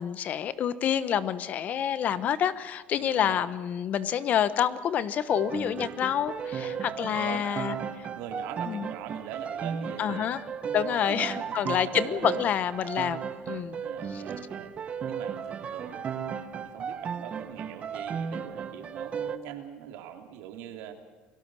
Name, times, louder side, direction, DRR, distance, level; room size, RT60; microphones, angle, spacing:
voice 1, 0.0-7.8 8.7-8.9 10.0-10.4 10.7-13.8 14.1-14.2, left 9 dB, 45° left, 14 dB, 1.2 m, -28 dB
voice 2, 3.0-3.5 6.6-7.9 8.2-10.3 11.1-12.2 13.8-14.7 15.1-16.1 16.6-20.9, right 9 dB, 80° right, 5 dB, 3.1 m, -43 dB
sound 1, 5.3-19.4, right 7 dB, 35° right, 1.4 m, -35 dB
29.0 x 18.0 x 6.4 m, 1.4 s
cardioid pair, 125°, 4 cm